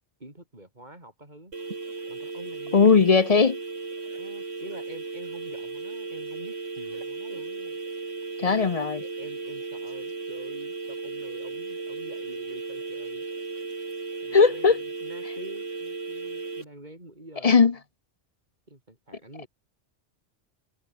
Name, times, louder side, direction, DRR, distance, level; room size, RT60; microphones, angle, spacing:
voice 1, 0.2-1.5 2.1-3.4 4.2-7.8 8.4-8.7 9.0-13.2 14.2-17.7 18.7-19.5, right 1 dB, 40° right, 6.5 m, -47 dB
sound 1, 1.5-16.6, right 3 dB, 80° right, 3.2 m, -35 dB
voice 2, 2.7-3.6 8.4-9.0 14.3-14.8 17.4-17.7, left 5 dB, 40° left, 0.7 m, -18 dB
omnidirectional pair, 1.2 m